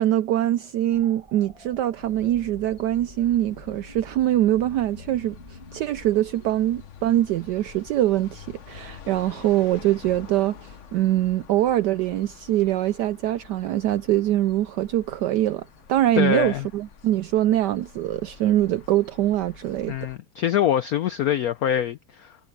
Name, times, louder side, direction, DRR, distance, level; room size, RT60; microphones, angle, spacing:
voice 1, 0.0-20.0, right 13 dB, 75° right, 1.0 m, -23 dB
sound 1, 0.9-6.5, right 2 dB, 20° right, 1.3 m, -49 dB
sound 2, 2.0-20.2, left 7 dB, 45° left, 1.0 m, -47 dB
voice 2, 16.2-16.7 19.9-22.4, left 10 dB, 75° left, 0.8 m, -24 dB
omnidirectional pair, 2.2 m